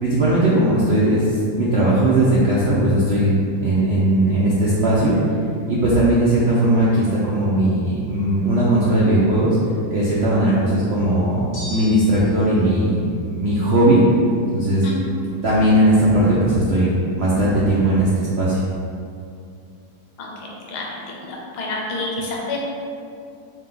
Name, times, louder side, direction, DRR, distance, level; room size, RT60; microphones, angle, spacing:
voice 1, 0.0-3.3 3.6-5.2 5.7-9.6 9.9-11.4 11.7-14.0 14.5-14.9 15.2-18.6, right 1 dB, 65° right, -8 dB, 0.6 m, -18 dB
sound 1, 11.5-12.5, equal, 45° left, 0.8 m, -36 dB
voice 2, 20.2-20.9 21.2-22.6, left 3 dB, 80° left, -2 dB, 1.3 m, -29 dB
3.3 x 2.8 x 3.7 m, 2.4 s
omnidirectional pair, 1.7 m